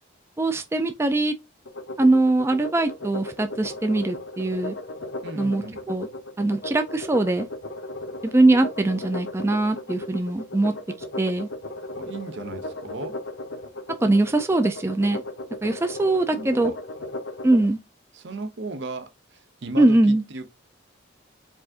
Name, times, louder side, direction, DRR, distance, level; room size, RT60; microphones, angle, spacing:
voice 1, 0.4-1.3 2.0-4.7 5.4-6.1 6.4-7.5 8.2-10.8 11.2-11.5 14.0-15.2 15.6-16.7 17.4-17.8 19.8-20.2, right 2 dB, 15° right, 0.3 m, -21 dB
sound 1, 1.7-17.7, left 2 dB, 85° left, 0.8 m, -36 dB
voice 2, 5.2-5.8 12.0-13.2 15.7-15.8 16.3-16.8 18.1-20.5, right 3 dB, 65° right, 0.6 m, -36 dB
4.8 x 2.5 x 3.6 m
head